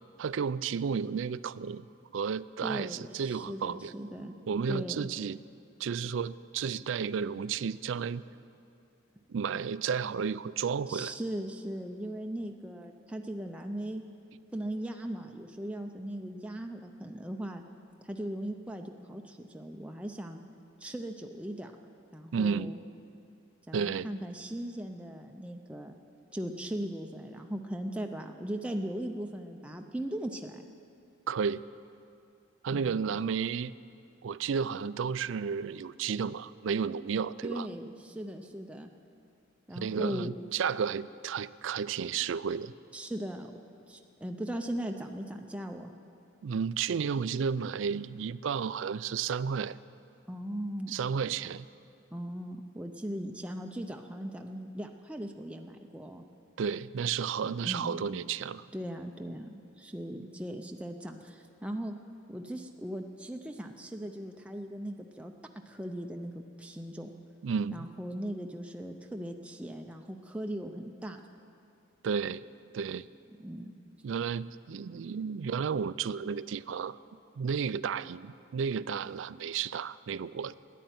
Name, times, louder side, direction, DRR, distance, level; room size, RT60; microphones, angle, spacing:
voice 1, 0.2-1.9 2.1-3.9 4.5-5.4 5.8-8.2 9.3-11.1 22.3-22.7 23.7-24.1 31.3-31.6 32.6-33.7 34.2-37.7 39.7-42.7 46.4-49.8 50.9-51.7 56.6-58.7 67.4-67.9 72.0-72.4 72.7-73.1 74.0-77.0 77.4-80.5, right 6 dB, 65° right, 17 dB, 0.4 m, -32 dB
voice 2, 2.6-4.3 4.7-5.1 10.9-14.0 14.5-17.6 18.0-20.4 20.8-21.7 22.1-22.8 23.7-26.0 26.3-30.6 37.4-38.9 39.7-40.3 42.9-43.5 43.9-45.9 50.3-50.9 52.1-56.2 57.6-58.2 58.7-62.0 62.3-65.3 65.7-67.1 67.7-71.2 73.4-73.7, right 1 dB, 5° right, 3 dB, 0.5 m, -38 dB
13.0 x 10.0 x 9.4 m, 2.6 s
head